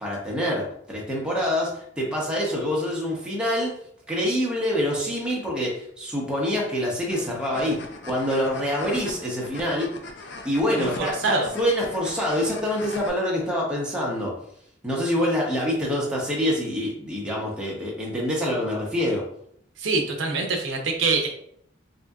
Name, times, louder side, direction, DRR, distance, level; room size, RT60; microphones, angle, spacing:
voice 1, 0.0-3.7 4.1-9.9 10.4-14.3 14.8-19.2, equal, 5° right, -4 dB, 0.7 m, -26 dB
sound 1, 7.1-13.1, left 3 dB, 65° left, 0.4 m, -40 dB
voice 2, 10.8-11.5 19.8-21.3, right 3 dB, 80° right, 3 dB, 0.6 m, -25 dB
3.6 x 2.7 x 2.3 m, 0.68 s
head